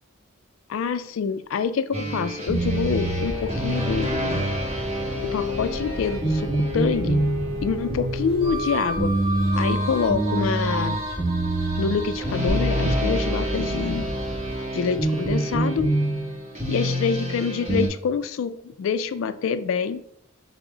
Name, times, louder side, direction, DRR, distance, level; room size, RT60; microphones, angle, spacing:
voice 1, 0.7-4.5 5.2-7.3 7.6-9.2 9.6-11.0 11.8-14.1 14.7-15.9 16.7-20.0, left 6 dB, 70° left, 12 dB, 0.3 m, -26 dB
sound 1, 1.9-17.9, right 1 dB, 30° right, 1.2 m, -26 dB
sound 2, 2.5-14.6, equal, 5° right, 1.1 m, -36 dB
sound 3, 12.5-14.6, left 1 dB, 60° right, 0.7 m, -28 dB
6.0 x 2.0 x 3.8 m, 0.70 s
head